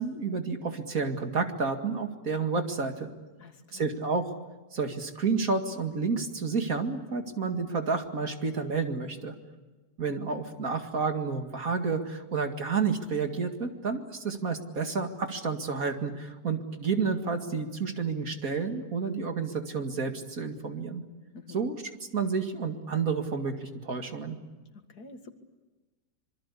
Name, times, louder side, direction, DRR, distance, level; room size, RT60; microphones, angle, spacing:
voice 1, 0.0-3.1 3.7-4.3 4.7-9.3 10.0-21.0 21.5-21.8 22.1-24.4, right 5 dB, 55° right, 5 dB, 2.5 m, -30 dB
voice 2, 3.4-3.8 21.3-21.6 24.7-25.3, left 3 dB, 65° left, 7 dB, 2.5 m, -48 dB
26.5 x 24.0 x 8.5 m, 1.2 s
omnidirectional pair, 1.9 m